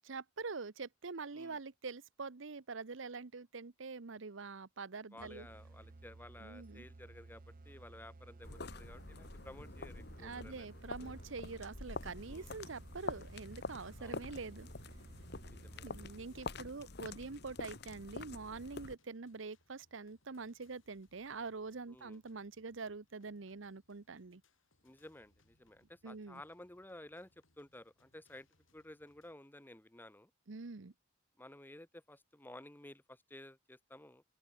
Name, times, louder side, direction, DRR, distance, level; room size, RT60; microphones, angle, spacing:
voice 1, 0.1-5.5 6.4-6.8 10.2-14.7 15.8-24.4 26.0-26.4 30.5-30.9, right 4 dB, 70° right, 0.9 m, -45 dB
voice 2, 5.1-10.7 12.3-12.5 14.0-14.2 15.5-15.9 21.9-22.2 24.8-27.3 27.6-28.5 28.7-30.3 31.4-34.2, left 1 dB, 10° left, 1.1 m, -54 dB
sound 1, 5.2-16.6, right 2 dB, 45° right, 0.7 m, -56 dB
sound 2, 8.4-19.0, left 3 dB, 55° left, 1.6 m, -47 dB
sound 3, 11.9-29.3, left 2 dB, 75° left, 6.7 m, -75 dB
open air
head